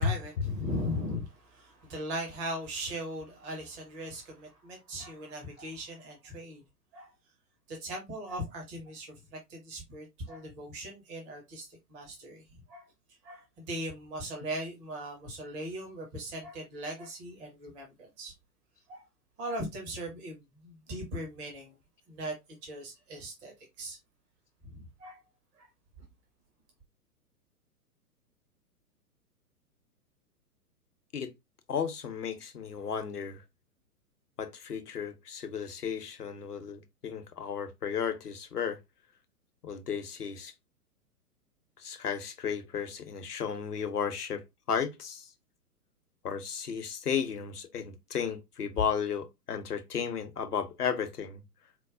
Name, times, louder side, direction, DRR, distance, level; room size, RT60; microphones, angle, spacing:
voice 1, 0.0-6.6 6.9-7.1 7.7-12.8 13.2-18.3 18.9-19.0 19.4-21.8 22.1-22.3 22.6-24.0 24.6-25.2 25.6-25.7, equal, 10° right, 0.5 m, -39 dB
voice 2, 31.7-33.4 34.4-38.8 39.6-40.5 41.8-45.3 46.2-51.4, left 7 dB, 75° left, 0.8 m, -34 dB
4.5 x 2.1 x 2.4 m
figure-of-eight pair, 115°, 47 cm